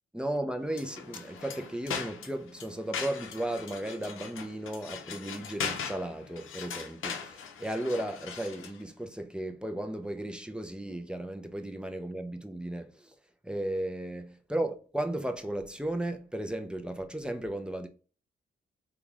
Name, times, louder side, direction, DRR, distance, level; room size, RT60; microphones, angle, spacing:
voice 1, 0.1-13.1 13.4-17.9, right 1 dB, 5° right, 0.5 m, -35 dB
sound 1, 0.7-8.8, left 6 dB, 80° left, 0.7 m, -40 dB
3.6 x 2.3 x 3.0 m
cardioid pair, 70°, 21 cm